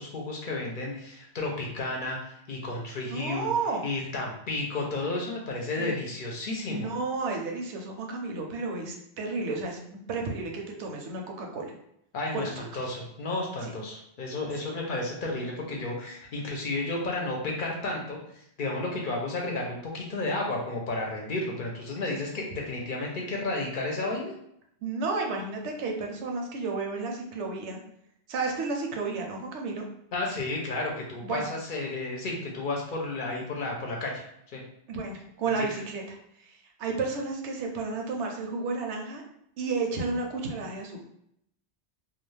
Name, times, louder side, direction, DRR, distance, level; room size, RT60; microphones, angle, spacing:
voice 1, 0.0-3.5 3.8-6.9 12.1-24.3 30.1-34.2 34.5-34.6 35.6-35.7, left 2 dB, 55° left, 0 dB, 0.6 m, -32 dB
voice 2, 3.1-3.8 5.8-6.0 6.7-11.7 12.3-12.5 24.8-27.8 28.3-29.8 31.2-31.5 34.9-39.2 39.6-41.1, right 3 dB, 85° right, 2 dB, 0.9 m, -32 dB
2.4 x 2.3 x 3.1 m, 0.74 s
omnidirectional pair, 1.1 m